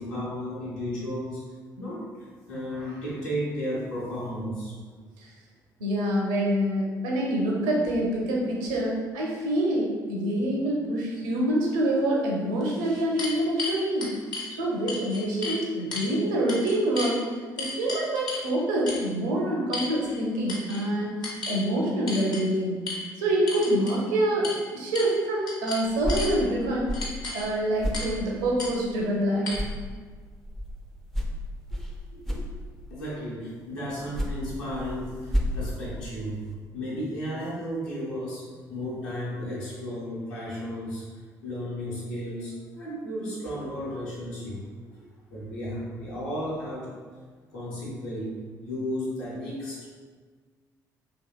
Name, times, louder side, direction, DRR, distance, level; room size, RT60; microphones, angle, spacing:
voice 1, 0.0-1.4 1.8-2.0 2.5-4.7 32.9-36.4 36.7-38.4 38.7-41.0 41.4-44.6 45.3-46.9 47.5-48.3 48.6-49.9, equal, 70° left, -7 dB, 0.9 m, -33 dB
voice 2, 5.8-14.1 14.6-17.2 17.6-26.9 27.3-29.6 32.3-32.5, right 1 dB, 70° right, -2 dB, 0.5 m, -26 dB
sound 1, 12.0-12.1 12.6-14.5 14.9-15.6 15.9-16.1 16.5-17.1 17.6-18.5 18.9-19.1 19.7-20.2 20.5-20.8 21.2-21.6 22.1-22.4 22.9-23.0 23.5-24.0 24.4-24.6 24.9-25.2 25.5-26.3 26.9-27.5 27.9-28.2 28.6-28.7 29.5-29.6, left 2 dB, 45° left, 0.7 m, -34 dB
sound 2, 25.8-29.2 29.5-33.1 33.9-36.5, equal, 5° left, 0.4 m, -33 dB
2.8 x 2.8 x 2.2 m, 1.5 s
figure-of-eight pair, 45°, 10 cm